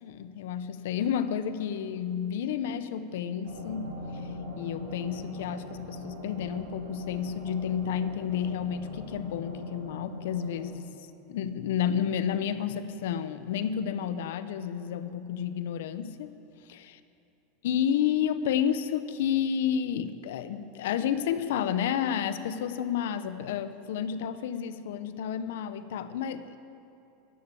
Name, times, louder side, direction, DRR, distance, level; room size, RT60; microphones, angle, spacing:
voice 1, 0.0-3.9 4.2-4.3 4.6-10.9 11.3-16.3 16.7-16.9 17.6-26.6, left 8 dB, 75° left, 12 dB, 0.8 m, -31 dB
sound 1, 3.4-10.6, left 2 dB, 70° right, 3.0 m, -40 dB
15.5 x 11.5 x 7.0 m, 2.7 s
supercardioid pair, 160°, 0 cm